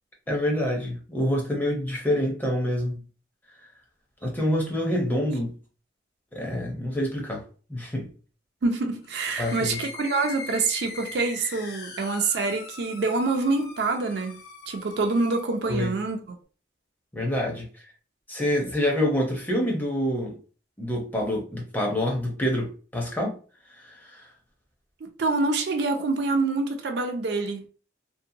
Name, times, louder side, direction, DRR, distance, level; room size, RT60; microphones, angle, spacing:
voice 1, 0.3-3.0 4.2-5.5 6.3-7.4 7.7-8.1 9.4-9.8 15.7-15.9 17.1-17.7 18.3-20.4 20.8-23.4 23.8-24.2, left 1 dB, 10° left, 0.6 m, -27 dB
voice 2, 8.6-16.2 25.0-27.7, right 3 dB, 70° right, 0.4 m, -26 dB
sound 1, 9.0-15.6, left 4 dB, 65° left, 0.5 m, -41 dB
2.7 x 2.1 x 2.6 m
head